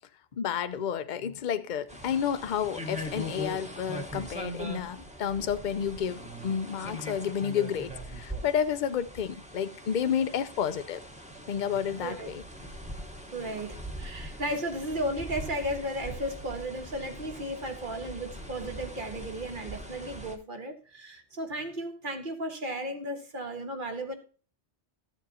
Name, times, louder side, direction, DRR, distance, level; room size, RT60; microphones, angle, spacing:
voice 1, 0.4-11.0 11.5-12.4, left 8 dB, 50° left, 0.7 m, -30 dB
sound 1, 1.9-20.4, equal, 5° right, 1.1 m, -41 dB
voice 2, 13.3-24.2, right 1 dB, 50° right, 1.5 m, -35 dB
13.5 x 7.3 x 2.8 m
omnidirectional pair, 1.2 m